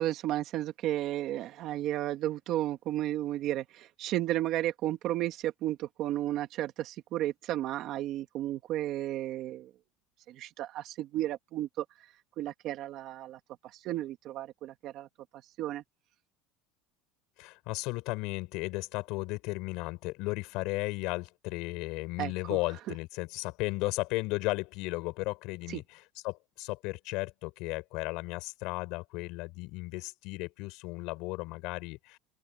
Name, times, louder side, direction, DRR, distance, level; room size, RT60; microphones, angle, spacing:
voice 1, 0.0-9.7 10.3-11.9 12.4-13.4 13.7-15.1 15.3-15.8 22.2-22.6 22.9-23.0 25.7-25.8, right 14 dB, 45° right, 2.1 m, -33 dB
voice 2, 17.4-25.8 26.2-32.2, left 23 dB, 60° left, 6.1 m, -35 dB
open air
cardioid pair, 160°, 0 cm